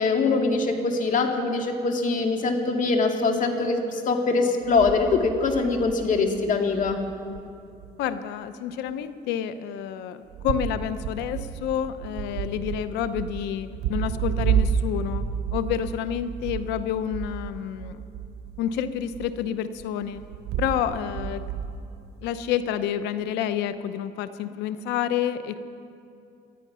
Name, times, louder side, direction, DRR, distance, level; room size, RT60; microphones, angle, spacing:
voice 1, 0.0-7.0, left 4 dB, 50° left, 3 dB, 2.1 m, -23 dB
sound 1, 4.6-6.5 6.8-7.4 7.8-7.9 10.3-18.8 19.1-22.1, right 8 dB, 80° right, 1.1 m, -31 dB
voice 2, 8.0-15.2 15.5-18.0 18.6-20.2 20.6-21.4 22.2-25.6, left 9 dB, 90° left, 12 dB, 0.8 m, -29 dB
19.5 x 12.5 x 5.6 m, 2.6 s
cardioid pair, 110°, 17 cm